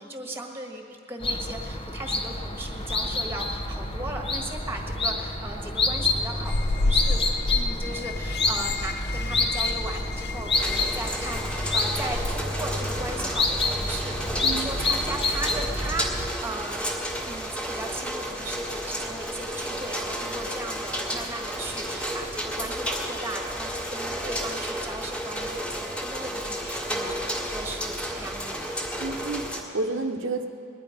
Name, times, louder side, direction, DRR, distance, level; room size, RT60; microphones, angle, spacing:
voice 1, 0.0-7.2 7.5-16.9 17.2-28.6, right 2 dB, 10° right, 2 dB, 1.5 m, -37 dB
sound 1, 1.2-16.3, left 2 dB, 25° left, 0.9 m, -28 dB
sound 2, 6.4-12.3, left 2 dB, 55° left, 0.5 m, -30 dB
sound 3, 10.5-29.6, equal, 5° left, 1.6 m, -32 dB
voice 2, 14.4-14.7 29.0-30.5, right 3 dB, 70° right, 2 dB, 0.9 m, -30 dB
20.5 x 10.5 x 5.1 m, 2.5 s
head